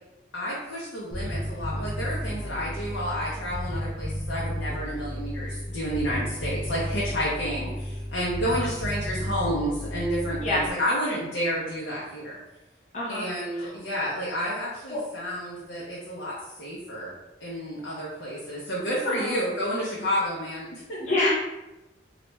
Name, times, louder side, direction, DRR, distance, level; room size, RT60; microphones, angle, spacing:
voice 1, 0.3-12.4 13.1-17.1 17.4-21.2, equal, 80° left, -6 dB, 0.7 m, -30 dB
Bass guitar, 1.1-10.7, equal, 5° right, 1.0 m, -33 dB
voice 2, 12.9-13.2 13.5-13.7 14.9-15.0 19.1-19.3 21.0-21.3, left 2 dB, 40° left, -6 dB, 0.6 m, -27 dB
3.2 x 2.4 x 3.0 m, 0.98 s
head